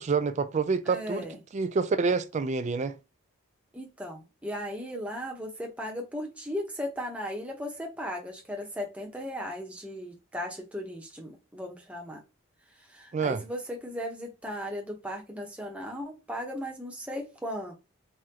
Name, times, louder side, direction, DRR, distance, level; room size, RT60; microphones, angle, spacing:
voice 1, 0.0-1.3 1.5-3.0 13.1-13.4, right 4 dB, 30° right, 0.3 m, -27 dB
voice 2, 0.9-1.4 3.7-12.2 12.8-17.8, equal, 5° right, 0.8 m, -37 dB
3.7 x 3.0 x 2.8 m
head